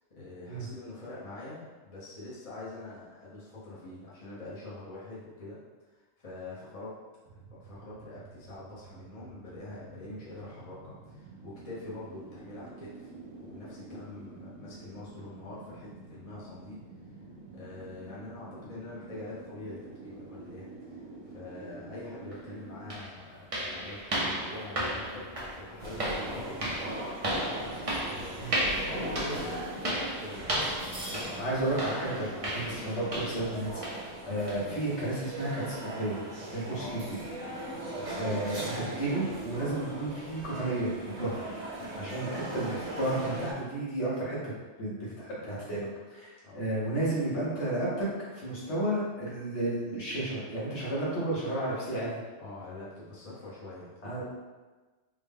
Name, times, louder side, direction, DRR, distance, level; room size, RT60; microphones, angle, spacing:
voice 1, 0.1-5.6 5.8-7.0 7.3-13.1 13.4-16.8 17.5-25.3 25.6-27.1 27.9-31.4 32.6-32.8 34.2-34.4 36.7-37.1 38.1-38.5 41.9-42.2 46.4-46.6 52.4-54.2, left 2 dB, 35° left, -8 dB, 0.8 m, -44 dB
sound 1, 7.3-22.9, right 3 dB, 85° right, 1.0 m, -49 dB
sound 2, 22.3-22.4 22.9-33.5 33.8-34.1 34.5-34.7 35.1-35.2 35.8-35.9, right 1 dB, 40° right, 0.5 m, -34 dB
sound 3, 25.8-43.5, right 1 dB, 70° right, 1.3 m, -39 dB
voice 2, 31.4-36.2 36.5-37.2 38.1-40.9 41.2-41.5 42.0-48.1 48.3-52.2 54.0-54.2, right 1 dB, 65° left, -7 dB, 1.3 m, -32 dB
3.6 x 2.1 x 3.4 m, 1.3 s
omnidirectional pair, 1.3 m